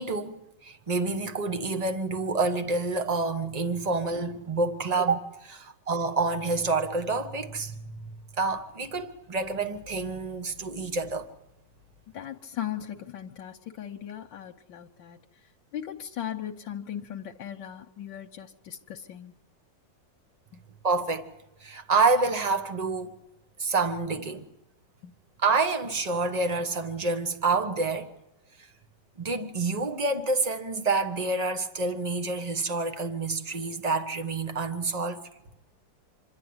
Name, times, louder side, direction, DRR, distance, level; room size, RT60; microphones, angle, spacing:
voice 1, 0.0-8.1 8.4-11.3 20.8-21.3 21.6-23.1 23.6-24.5 25.4-28.1 29.2-35.2, right 3 dB, 25° right, 1.3 m, -28 dB
voice 2, 12.1-15.2 15.7-19.3 20.5-20.6 25.0-25.2, left 10 dB, 80° left, 1.6 m, -38 dB
26.5 x 11.0 x 9.6 m
omnidirectional pair, 2.0 m